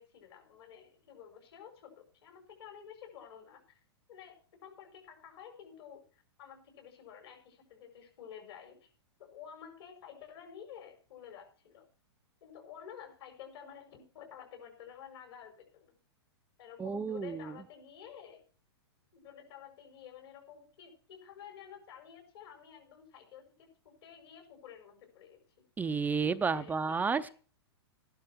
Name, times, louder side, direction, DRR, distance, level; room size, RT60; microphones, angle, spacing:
voice 1, 0.0-3.8 4.1-8.9 9.2-11.9 12.4-16.0 16.6-18.4 19.1-25.4 26.2-27.3, left 8 dB, 65° left, 4 dB, 5.9 m, -51 dB
voice 2, 16.8-17.4 25.8-27.3, right 5 dB, 10° right, 10 dB, 0.5 m, -31 dB
14.0 x 11.5 x 4.6 m, 0.39 s
hypercardioid pair, 120°, 14 cm